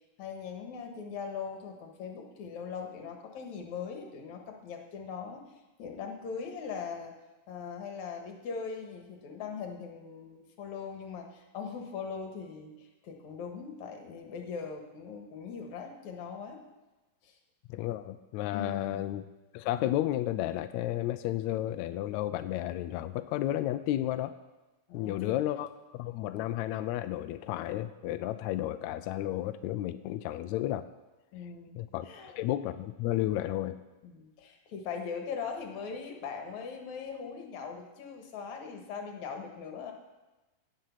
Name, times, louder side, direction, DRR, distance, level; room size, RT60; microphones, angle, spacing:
voice 1, 0.2-5.5 5.8-7.1 7.5-16.6 17.2-17.4 18.5-19.0 24.9-25.4 31.3-31.8 32.0-32.3 34.0-39.9, left 6 dB, 65° left, 3 dB, 2.7 m, -40 dB
voice 2, 17.7-19.2 19.5-24.3 24.9-30.9 31.8-33.8, left 13 dB, 85° left, 10 dB, 1.6 m, -32 dB
17.5 x 6.7 x 5.8 m, 1.1 s
omnidirectional pair, 3.8 m